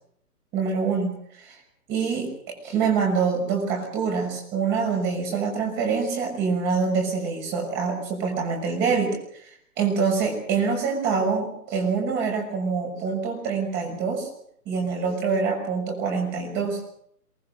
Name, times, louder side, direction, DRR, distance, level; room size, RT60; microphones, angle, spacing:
voice 1, 0.5-1.1 1.4-1.6 1.9-9.2 9.8-14.3 14.7-16.8, right 5 dB, 20° right, 2 dB, 6.3 m, -25 dB
23.0 x 20.0 x 6.6 m, 0.69 s
figure-of-eight pair, 140°, 47 cm